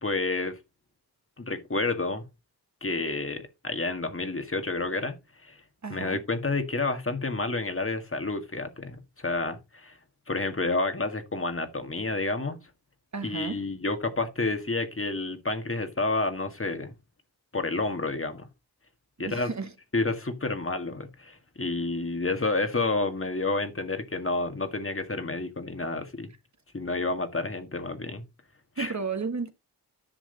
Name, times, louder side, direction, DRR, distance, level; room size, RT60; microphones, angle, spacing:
voice 1, 0.0-0.6 1.4-2.2 2.8-5.6 5.9-10.0 10.3-12.6 13.2-16.9 17.5-18.5 19.2-19.5 19.9-26.3 26.7-28.2 28.8-28.9, left 3 dB, 30° left, 1.9 m, -30 dB
voice 2, 5.8-6.2 13.1-13.7 19.2-19.7 28.8-29.5, right 4 dB, 40° right, 1.6 m, -33 dB
10.5 x 6.3 x 4.0 m
cardioid pair, 55°, 41 cm